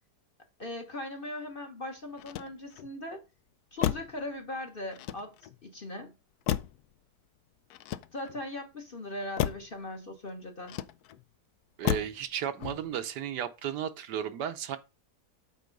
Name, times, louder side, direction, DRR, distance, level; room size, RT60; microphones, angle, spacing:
voice 1, 0.6-3.2 3.7-5.3 5.6-6.1 8.1-10.8, left 1 dB, 35° left, 1.3 m, -39 dB
Motor vehicle (road), 2.1-2.9 3.8-4.2 4.9-5.6 6.5-6.9 7.7-8.5 9.4-9.7 10.7-11.2 11.8-12.2 12.6-13.0, left 12 dB, 70° left, 1.0 m, -33 dB
voice 2, 11.8-14.8, right 9 dB, 75° right, 1.3 m, -34 dB
8.3 x 4.0 x 5.3 m
omnidirectional pair, 1.9 m